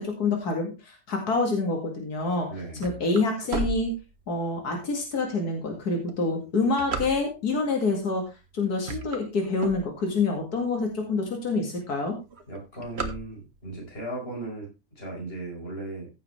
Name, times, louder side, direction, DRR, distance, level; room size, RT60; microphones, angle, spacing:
voice 1, 0.0-2.5 2.8-3.9 4.3-8.2 8.5-12.2, left 3 dB, 90° left, 2 dB, 2.7 m, -27 dB
sound 1, 2.3-4.6 5.2-5.3 5.9-7.6 8.3-8.5 8.8-10.3 10.8-10.9 11.1-11.2 11.5-11.9 12.1-13.8, right 3 dB, 45° right, 1.5 m, -34 dB
voice 2, 2.5-2.8 12.5-16.1, right 2 dB, 40° left, -1 dB, 5.3 m, -37 dB
15.0 x 7.3 x 3.3 m, 0.26 s
omnidirectional pair, 1.6 m